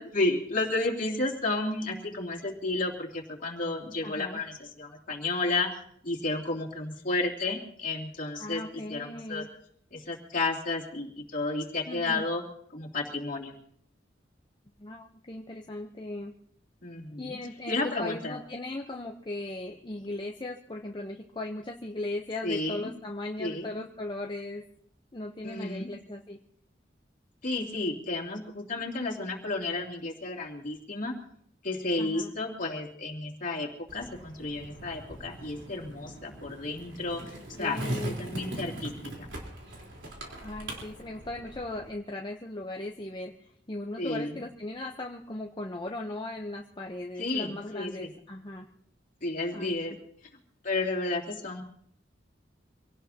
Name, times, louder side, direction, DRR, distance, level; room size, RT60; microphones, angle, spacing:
voice 1, 0.0-5.7 6.0-8.6 8.9-9.4 9.9-12.4 12.7-13.5 16.8-17.4 17.7-18.4 22.4-22.9 23.4-23.7 25.4-25.9 27.4-31.2 31.6-38.9 44.0-44.3 47.2-48.1 49.2-50.0 50.6-51.6, left 2 dB, 45° left, 0 dB, 3.0 m, -32 dB
voice 2, 4.0-4.4 8.4-9.5 11.9-12.3 14.8-16.3 17.2-24.6 25.1-26.4 32.0-32.3 37.2-37.3 37.6-38.1 40.4-48.7 49.5-49.7, left 2 dB, 25° left, 1 dB, 0.8 m, -38 dB
Skateboard, 33.9-41.9, right 1 dB, 75° right, 3.9 m, -40 dB
26.0 x 17.5 x 2.9 m, 0.67 s
head